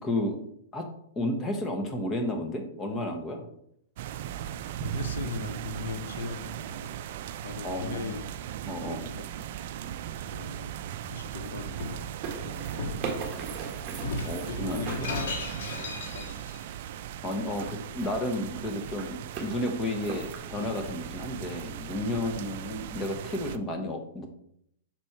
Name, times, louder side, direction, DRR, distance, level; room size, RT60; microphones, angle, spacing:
voice 1, 0.0-0.4 0.7-0.9 1.2-3.5 7.6-8.2 8.7-9.0 14.2-15.1 17.2-24.3, left 1 dB, 15° left, 4 dB, 1.0 m, -32 dB
sound 1, 4.0-23.6, right 10 dB, 50° right, 0.4 m, -38 dB
voice 2, 4.4-6.9 7.4-8.2 8.8-9.3 10.2-10.8 11.1-12.1 12.4-13.1 14.4-16.4 22.2-22.5, left 4 dB, 85° left, 9 dB, 0.8 m, -39 dB
Shatter, 11.2-12.0 12.8-13.1 14.0-16.6, left 2 dB, 60° left, 1.8 m, -36 dB
sound 2, 11.8-16.0 17.3-18.3 18.6-19.5 20.0-20.4, right 4 dB, 25° right, 1.3 m, -39 dB
6.1 x 4.2 x 4.6 m, 0.72 s
hypercardioid pair, 150°, 0 cm